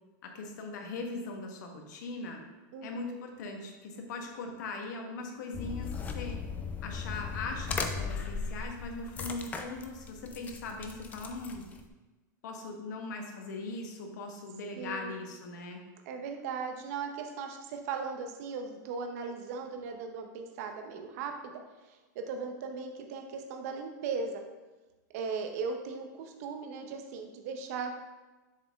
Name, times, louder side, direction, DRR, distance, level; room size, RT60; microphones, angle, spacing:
voice 1, 0.2-2.4 2.8-6.4 6.8-11.7 12.4-15.8, left 3 dB, 70° left, 3 dB, 1.2 m, -40 dB
voice 2, 2.7-3.2 14.8-15.2 16.1-24.4 25.1-28.0, right 5 dB, 55° right, 4 dB, 0.7 m, -38 dB
sound 1, 5.5-11.9, left 5 dB, 15° left, 0.4 m, -37 dB
7.0 x 4.2 x 3.5 m, 1.2 s
supercardioid pair, 155°, 10 cm